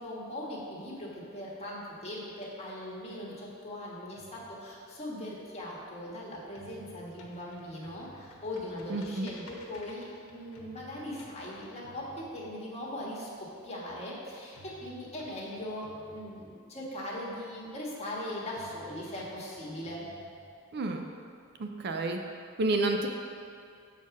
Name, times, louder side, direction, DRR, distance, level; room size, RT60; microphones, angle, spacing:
voice 1, 0.0-20.1, left 1 dB, 30° left, -5 dB, 1.5 m, -40 dB
sound 1, 4.1-6.1 6.4-12.9 14.6-16.9 18.6-20.9, equal, 85° left, 1.1 m, -54 dB
voice 2, 8.9-9.3 20.7-21.0 21.6-22.2 22.6-23.1, right 2 dB, 50° right, 4 dB, 0.5 m, -29 dB
7.3 x 4.6 x 5.8 m, 2.4 s
head